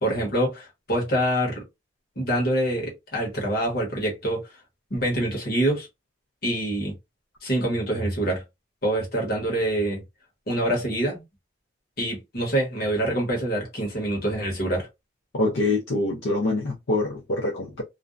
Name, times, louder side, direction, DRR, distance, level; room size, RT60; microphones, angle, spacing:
voice 1, 0.0-1.6 2.2-4.4 4.9-5.9 6.4-6.9 7.4-8.4 8.8-10.0 10.5-11.2 12.0-14.9, right 1 dB, 50° left, 1.1 m, -25 dB
voice 2, 15.3-17.8, left 2 dB, 70° left, 0.5 m, -25 dB
2.5 x 2.1 x 2.4 m
head